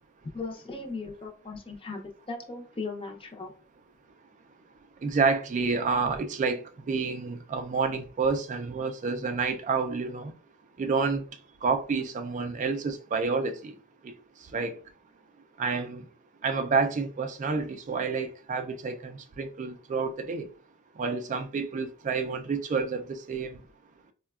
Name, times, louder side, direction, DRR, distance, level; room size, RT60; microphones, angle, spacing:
voice 1, 0.3-3.5, left 3 dB, 25° left, 0.5 m, -38 dB
voice 2, 5.0-6.6 6.9-10.3 10.8-11.2 11.6-13.7 14.5-14.7 15.6-16.0 16.4-20.5 21.0-23.6, right 4 dB, 35° right, 0.3 m, -29 dB
4.7 x 2.2 x 2.3 m
head